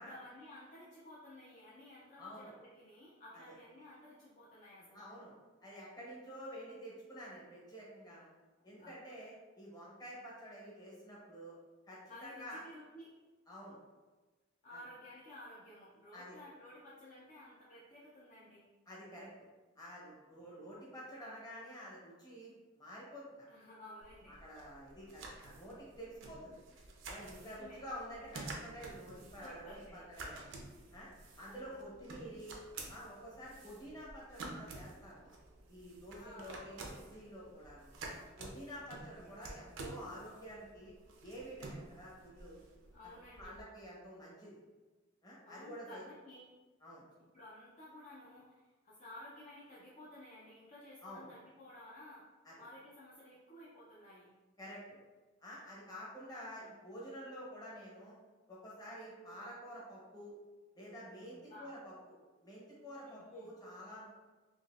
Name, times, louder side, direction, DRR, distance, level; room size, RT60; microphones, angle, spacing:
voice 1, 0.0-5.1 8.6-9.0 12.1-13.1 14.6-18.7 20.3-20.7 23.5-24.4 27.4-27.8 29.3-30.1 31.4-31.8 36.2-36.6 38.9-39.3 42.9-43.6 45.5-46.5 47.3-52.3 52.6-54.3 61.3-61.7 63.1-63.5, left 1 dB, 40° left, -6 dB, 0.5 m, -54 dB
voice 2, 2.2-2.5 3.3-3.5 4.9-5.3 5.6-8.3 8.6-11.6 11.9-12.6 13.5-13.8 14.7-14.8 16.1-16.4 18.9-19.3 19.8-23.5 24.3-26.6 27.1-30.5 30.9-31.1 31.4-32.5 32.9-35.4 35.7-37.9 38.4-40.9 41.2-42.6 43.0-44.5 45.2-46.0 46.8-47.0 51.0-51.2 52.4-52.5 54.6-54.8 55.4-58.1 58.5-60.3 60.7-61.9 62.4-64.1, equal, 20° left, -6 dB, 0.9 m, -49 dB
sound 1, 24.0-43.6, right 2 dB, 80° right, 0.5 m, -51 dB
4.0 x 2.5 x 2.4 m, 1.2 s
head